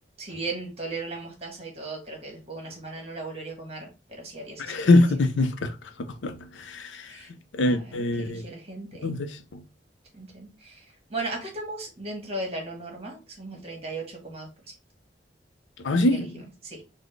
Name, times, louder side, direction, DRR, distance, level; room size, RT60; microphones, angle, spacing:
voice 1, 0.2-4.9 7.1-7.3 7.6-9.1 10.1-14.5 16.1-16.2 16.6-16.8, right 2 dB, 35° right, 1.2 m, -37 dB
voice 2, 4.6-7.2 7.5-8.5 9.0-9.6 15.8-16.4, left 2 dB, 85° left, 0.5 m, -24 dB
3.9 x 2.1 x 3.1 m
head